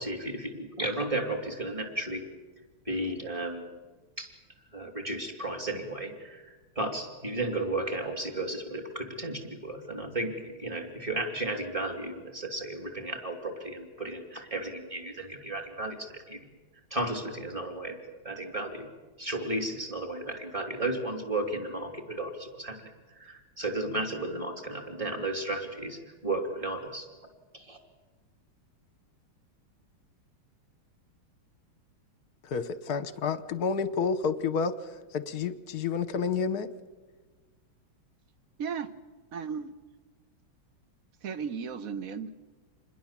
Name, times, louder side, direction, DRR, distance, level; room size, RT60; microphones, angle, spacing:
voice 1, 0.0-2.2 2.8-3.6 4.2-4.3 4.7-16.4 16.9-18.0 18.2-18.9 19.2-22.8 23.1-27.1 27.5-27.8, right 2 dB, 15° right, 5 dB, 2.8 m, -34 dB
voice 2, 32.4-34.7 35.1-36.7, left 5 dB, 55° left, 14 dB, 1.3 m, -29 dB
voice 3, 38.6-38.9 39.3-39.7 41.2-42.3, right 6 dB, 50° right, 13 dB, 1.1 m, -35 dB
27.0 x 21.0 x 7.4 m, 1.3 s
omnidirectional pair, 2.3 m